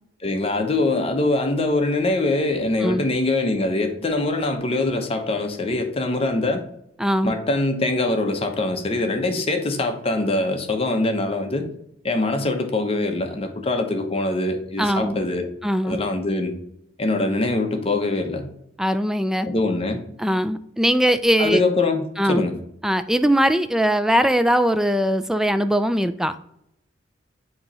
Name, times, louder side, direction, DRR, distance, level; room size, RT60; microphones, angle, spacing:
voice 1, 0.2-6.6 7.2-11.7 12.0-15.5 15.8-16.6 17.0-18.5 19.5-20.0 21.4-22.6, left 2 dB, 30° left, 0.9 m, -23 dB
voice 2, 7.0-7.4 14.8-15.3 15.6-16.0 18.8-19.5 20.2-21.6 22.2-22.5 22.8-26.3, equal, 5° right, 0.3 m, -20 dB
7.7 x 3.0 x 5.5 m
head